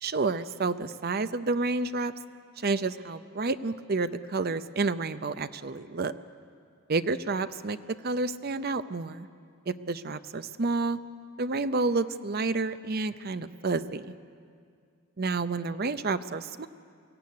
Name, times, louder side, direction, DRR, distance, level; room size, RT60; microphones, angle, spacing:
voice 1, 0.0-2.1 2.6-6.1 6.9-7.8 8.0-9.3 9.7-11.0 11.4-14.1 15.2-16.7, right 3 dB, 45° right, 12 dB, 0.6 m, -29 dB
23.0 x 16.0 x 9.5 m, 2.2 s
head